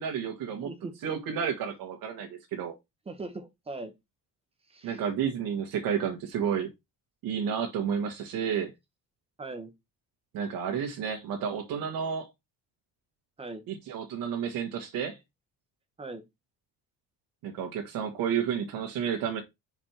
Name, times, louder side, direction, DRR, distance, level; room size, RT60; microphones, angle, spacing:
voice 1, 0.0-0.7 1.0-2.7 4.8-6.7 7.2-8.7 10.3-12.3 13.7-15.2 17.4-19.4, right 7 dB, 75° right, 1.7 m, -31 dB
voice 2, 0.6-1.0 3.1-3.9 4.7-5.0 9.4-9.7 13.4-13.6 16.0-16.2, right 2 dB, 15° right, 1.1 m, -40 dB
5.4 x 4.9 x 4.4 m
cardioid pair, 170°, 35 cm